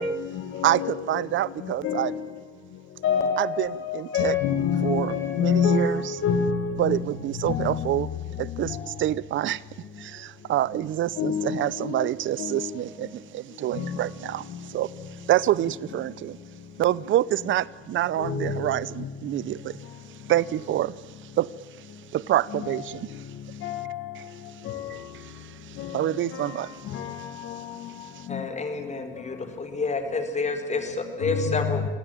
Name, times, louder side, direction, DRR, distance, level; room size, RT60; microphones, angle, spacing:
voice 1, 0.0-1.2 1.6-2.3 3.0-7.0 7.5-7.9 8.7-8.8 11.2-12.1 12.4-12.8 13.7-13.9 18.2-18.6 22.6-22.8 23.6-24.1 24.7-24.9 25.8-26.0 26.3-26.6 26.9-27.7 28.3-28.4 31.2-31.7, left 6 dB, 85° left, 2.1 m, -27 dB
voice 2, 0.6-2.1 3.4-4.3 4.8-6.1 6.8-8.1 8.4-9.6 10.0-16.4 16.8-19.8 20.3-21.0 21.2-21.5 21.8-21.9 22.1-23.3 24.2-24.3 24.9-27.6 28.0-28.3, right 13 dB, 75° right, 0.8 m, -27 dB
voice 3, 28.3-31.9, left 3 dB, 35° left, 4.3 m, -29 dB
27.5 x 17.5 x 9.2 m
cardioid pair, 90°, 20 cm